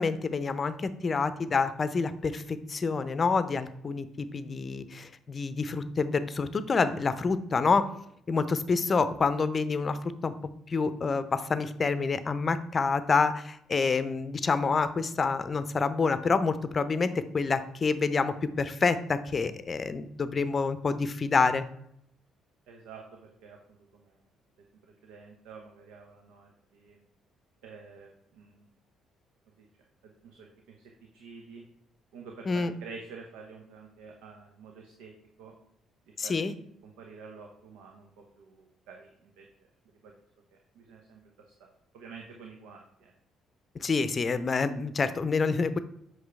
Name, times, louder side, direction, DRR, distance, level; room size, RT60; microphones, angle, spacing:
voice 1, 0.0-7.9 8.3-10.3 10.7-21.7 32.5-32.7 36.2-36.5 43.7-45.8, left 4 dB, 35° left, 13 dB, 0.6 m, -27 dB
voice 2, 22.7-24.2 24.8-27.0 27.6-28.7 29.6-29.7 30.0-30.8 31.1-31.6 32.1-35.1 35.4-35.5 36.2-36.5 36.8-38.1 38.4-39.5 39.9-40.1 40.7-41.2 41.5-41.7 41.9-43.1, right 4 dB, 65° right, 2 dB, 0.9 m, -49 dB
7.9 x 6.0 x 3.5 m, 0.73 s
figure-of-eight pair, 45°, 0 cm